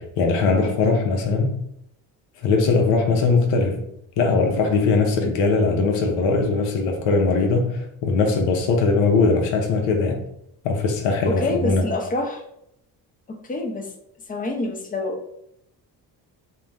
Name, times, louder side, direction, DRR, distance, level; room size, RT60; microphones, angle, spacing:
voice 1, 0.0-1.6 2.4-3.8 4.2-10.2 10.6-11.9, left 4 dB, 90° left, 0.6 m, -20 dB
voice 2, 11.2-12.4 13.3-13.9 14.3-15.4, left 2 dB, 20° left, 0.6 m, -27 dB
2.5 x 2.2 x 3.2 m
supercardioid pair, 60°, 44 cm